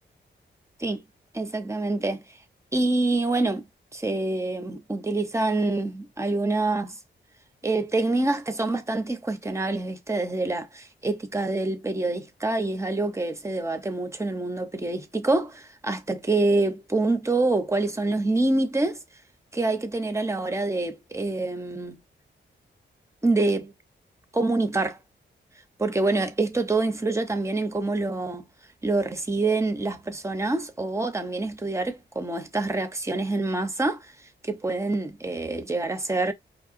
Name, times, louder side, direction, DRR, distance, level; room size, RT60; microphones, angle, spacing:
voice 1, 1.3-2.2 2.7-7.0 7.6-19.0 19.5-22.0 23.2-23.7 24.3-25.0 25.8-28.4 28.8-34.1 34.4-36.3, right 2 dB, 15° right, 0.6 m, -26 dB
4.3 x 2.8 x 2.5 m
wide cardioid pair, 115°, 20 cm